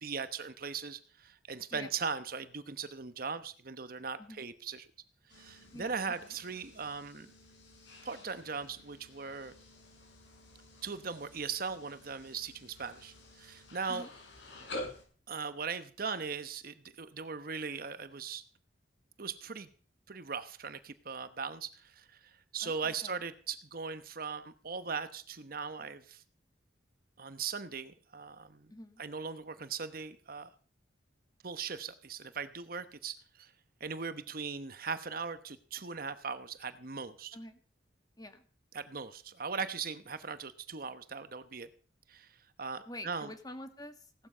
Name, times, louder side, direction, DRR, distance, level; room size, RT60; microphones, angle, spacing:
voice 1, 0.0-4.9 5.3-7.3 8.0-9.5 10.8-14.1 15.3-18.4 19.2-19.7 20.1-26.2 27.2-28.7 29.0-30.5 31.4-33.5 33.8-37.4 38.7-41.7 42.1-43.3, right 5 dB, 50° right, 12 dB, 1.0 m, -39 dB
sound 1, 5.3-15.0, left 1 dB, 70° left, 7.1 m, -49 dB
voice 2, 5.7-6.1 13.9-14.1 22.6-23.1 28.7-29.0 37.3-37.6 38.2-38.4 42.9-44.3, left 1 dB, 20° left, 8 dB, 1.9 m, -47 dB
17.5 x 12.5 x 5.6 m, 0.41 s
head